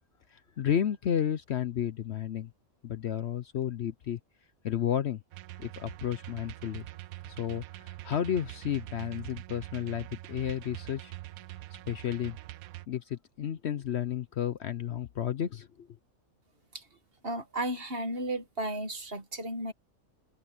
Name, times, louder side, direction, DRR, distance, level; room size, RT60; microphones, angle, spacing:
voice 1, 0.3-2.5 2.8-4.2 4.6-5.2 5.6-6.9 7.3-11.1 11.9-12.4 12.9-15.9, left 9 dB, 60° left, 0.9 m, -32 dB
sound 1, 5.3-12.9, right 16 dB, 85° right, 1.1 m, -44 dB
voice 2, 17.2-19.7, right 1 dB, 45° right, 2.0 m, -34 dB
omnidirectional pair, 1.5 m